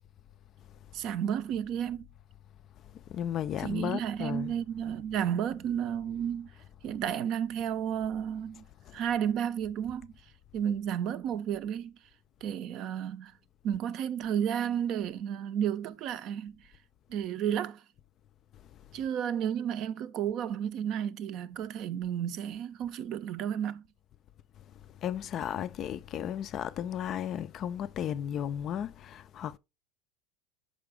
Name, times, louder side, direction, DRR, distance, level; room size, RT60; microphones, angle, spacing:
voice 1, 0.9-2.1 3.6-6.5 6.8-8.7 8.9-10.1 10.5-11.9 12.4-13.3 13.6-16.6 17.1-17.8 18.9-23.8, right 9 dB, 40° right, 0.5 m, -32 dB
voice 2, 3.1-4.5 8.9-9.0 25.0-29.6, left 9 dB, 30° left, 0.3 m, -34 dB
6.7 x 4.9 x 3.5 m
supercardioid pair, 155°, 0 cm